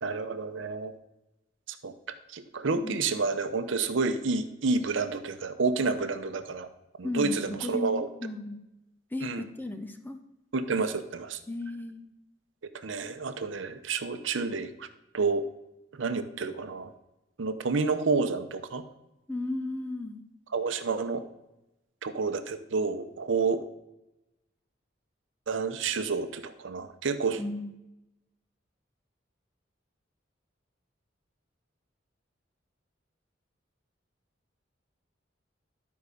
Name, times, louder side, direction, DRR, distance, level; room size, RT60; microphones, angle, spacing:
voice 1, 0.0-0.9 1.7-1.9 2.3-6.7 7.0-8.1 9.2-9.4 10.5-11.4 12.8-14.9 15.1-15.5 16.0-16.9 17.4-18.9 20.5-21.2 22.0-23.6 25.5-27.4, right 4 dB, 80° right, 9 dB, 0.7 m, -29 dB
voice 2, 7.0-8.6 9.1-10.2 11.5-12.0 19.3-20.2 27.4-27.7, left 2 dB, 10° left, 7 dB, 0.6 m, -35 dB
12.0 x 4.7 x 5.3 m, 0.94 s
head